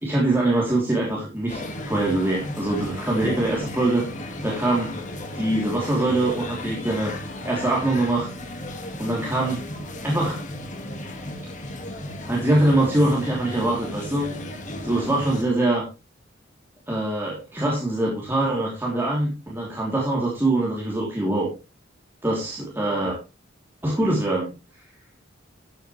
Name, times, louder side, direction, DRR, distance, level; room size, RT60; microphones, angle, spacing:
voice 1, 0.0-1.6 1.9-4.1 4.4-4.9 5.3-7.1 7.4-8.3 9.0-9.6 10.0-10.4 12.2-14.3 14.8-15.8 16.9-21.5 22.2-23.2 23.8-24.5, right 1 dB, 10° right, -4 dB, 3.1 m, -23 dB
sound 1, 1.5-15.4, left 1 dB, 40° left, 1.9 m, -35 dB
13.0 x 9.1 x 3.2 m, 0.29 s
head